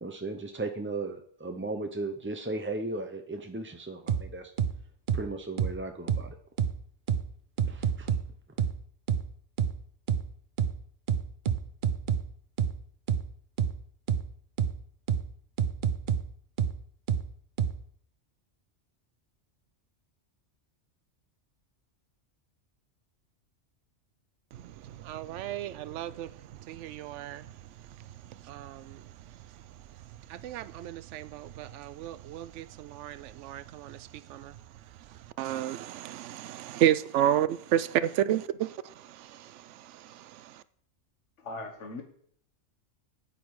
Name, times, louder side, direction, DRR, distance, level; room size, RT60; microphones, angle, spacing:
voice 1, 0.0-4.5 5.1-6.4 7.6-8.1, right 2 dB, 20° right, 6 dB, 0.3 m, -36 dB
sound 1, 4.1-4.2 4.6-4.7 5.1-5.2 5.6-5.7 6.1-6.2 6.6-6.7 7.1-7.2 7.6-8.2 8.6-8.7 9.1-9.2 9.6-9.7 10.1-10.2 10.6-10.7 11.1-12.2 12.6-12.7 13.1-13.2 13.6-13.7 14.1-14.2 14.6-14.7 15.1-15.2 15.6-16.2 16.6-16.7 17.1-17.2 17.6-17.7, right 8 dB, 50° right, 0.7 m, -26 dB
voice 2, 24.5-26.3 26.7-27.5 28.5-29.0 30.3-34.0 34.3-34.5 35.4-38.4 38.8-40.6, right 12 dB, 80° right, 16 dB, 0.9 m, -32 dB
voice 3, 38.0-38.4 41.4-42.0, left 2 dB, 75° left, 3 dB, 1.5 m, -40 dB
9.3 x 8.9 x 4.7 m, 0.62 s
omnidirectional pair, 1.2 m